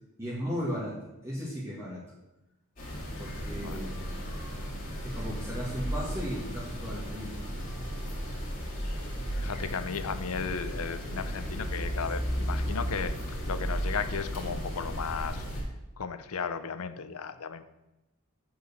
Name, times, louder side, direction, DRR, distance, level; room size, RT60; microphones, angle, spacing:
voice 1, 0.2-2.0 3.2-4.0 5.0-7.5, equal, 15° right, -7 dB, 1.7 m, -36 dB
sound 1, 2.8-15.6, equal, 40° left, 2.4 m, -34 dB
voice 2, 3.6-3.9 9.4-13.2 13.5-15.4 16.0-17.6, left 6 dB, 90° left, 12 dB, 0.6 m, -35 dB
7.9 x 4.7 x 6.7 m, 0.96 s
head